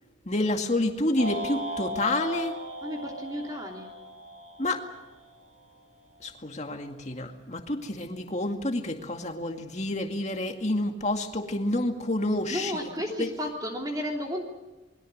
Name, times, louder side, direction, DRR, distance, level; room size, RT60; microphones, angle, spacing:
voice 1, 0.3-2.6 4.6-4.9 6.2-12.9 13.2-13.3, left 1 dB, 35° left, 4 dB, 2.1 m, -29 dB
sound 1, 1.2-5.5, equal, 85° right, 5.8 m, -37 dB
voice 2, 2.8-3.9 12.5-14.5, equal, 20° right, 0 dB, 3.1 m, -33 dB
28.0 x 22.0 x 6.5 m, 1.1 s
head